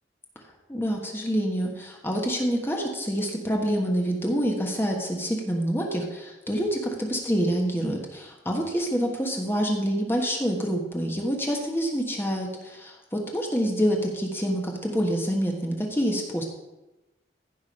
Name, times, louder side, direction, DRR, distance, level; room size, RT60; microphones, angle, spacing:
voice 1, 0.7-16.5, equal, 15° left, 0 dB, 1.3 m, -27 dB
15.0 x 5.2 x 5.3 m, 1.0 s
head